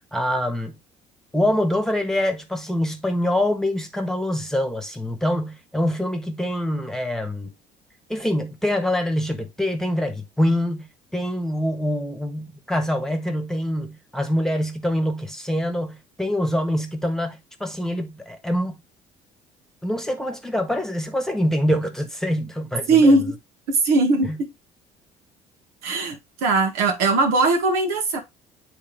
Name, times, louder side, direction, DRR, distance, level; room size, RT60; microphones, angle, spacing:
voice 1, 0.1-0.8 1.3-7.5 8.1-18.8 19.8-23.1 24.2-24.4, left 1 dB, 5° left, 1.4 m, -25 dB
voice 2, 22.9-23.3 23.7-24.5 25.8-26.2 26.4-28.2, right 3 dB, 80° right, 1.6 m, -19 dB
8.5 x 3.4 x 3.3 m
supercardioid pair, 85°, 15 cm